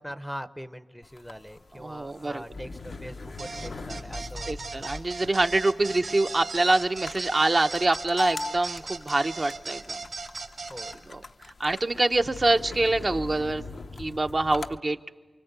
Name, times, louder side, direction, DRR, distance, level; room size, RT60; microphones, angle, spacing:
voice 1, 0.0-4.5 10.7-11.0, equal, ahead, 12 dB, 0.7 m, -41 dB
sound 1, 1.0-14.8, left 3 dB, 65° left, 0.7 m, -41 dB
voice 2, 1.8-2.4 4.5-10.0 11.1-11.2 11.6-13.6 14.0-15.0, right 2 dB, 40° right, 5 dB, 0.8 m, -25 dB
sound 2, 3.4-11.0, right 3 dB, 75° right, 2.5 m, -37 dB
28.5 x 24.0 x 8.2 m, 1.4 s
wide cardioid pair, 75°, 0 cm